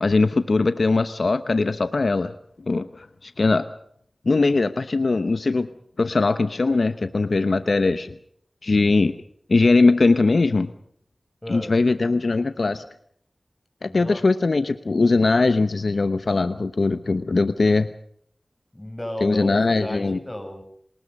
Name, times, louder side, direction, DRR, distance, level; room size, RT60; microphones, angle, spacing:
voice 1, 0.0-2.3 2.7-3.7 4.2-5.7 6.0-8.1 8.6-9.1 9.5-10.7 11.5-12.8 13.8-17.9 19.2-20.2, left 3 dB, 75° left, 11 dB, 0.9 m, -20 dB
voice 2, 11.4-11.7 13.9-14.2 18.7-20.6, left 1 dB, 20° left, 5 dB, 6.8 m, -34 dB
28.0 x 20.0 x 5.3 m, 0.66 s
cardioid pair, 40°, 0 cm